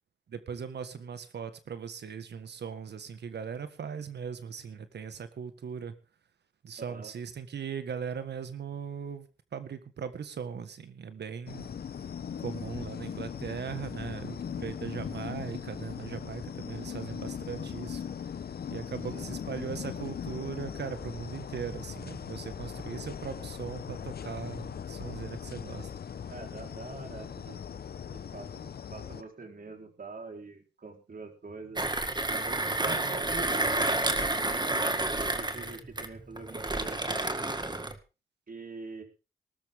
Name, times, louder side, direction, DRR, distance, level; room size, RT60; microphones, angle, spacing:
voice 1, 0.3-5.9 6.6-9.3 9.5-11.7 12.4-18.0 18.7-25.9 32.8-33.0, right 7 dB, 75° right, 11 dB, 1.6 m, -39 dB
voice 2, 6.8-7.1 19.1-19.3 26.3-27.7 28.1-31.8 32.3-37.2 38.5-39.0, right 3 dB, 55° right, 4 dB, 4.2 m, -44 dB
sound 1, 11.5-29.2, left 7 dB, 65° left, 0.9 m, -39 dB
Mechanisms, 31.8-38.0, right 2 dB, 25° right, 2.0 m, -30 dB
19.0 x 13.0 x 3.7 m, 0.32 s
supercardioid pair, 45°, 18 cm